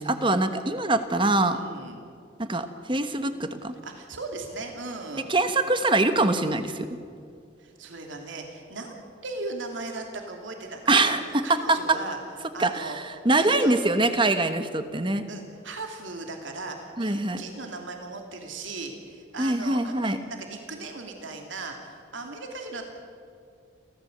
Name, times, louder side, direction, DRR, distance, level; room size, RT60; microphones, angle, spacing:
voice 1, 0.0-1.6 2.4-3.7 5.3-6.9 10.9-12.0 12.6-15.2 17.0-17.4 19.4-20.2, right 2 dB, 25° right, 9 dB, 1.2 m, -24 dB
voice 2, 1.5-2.0 3.8-5.3 7.6-11.1 11.4-12.2 12.5-13.0 13.4-13.8 15.3-22.8, right 3 dB, 75° right, 3 dB, 2.8 m, -38 dB
29.5 x 14.5 x 8.0 m, 2.3 s
head